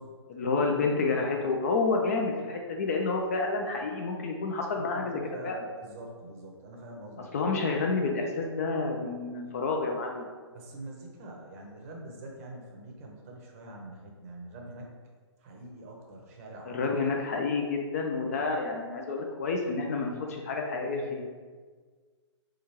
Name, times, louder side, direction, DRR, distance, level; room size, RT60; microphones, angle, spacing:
voice 1, 0.3-5.7 7.3-10.3 16.7-21.2, left 3 dB, 30° left, 1 dB, 0.3 m, -29 dB
voice 2, 4.7-7.3 10.5-14.9 15.4-16.8, right 1 dB, 30° right, 0 dB, 0.7 m, -44 dB
4.2 x 2.4 x 3.0 m, 1.5 s
figure-of-eight pair, 135°, 15 cm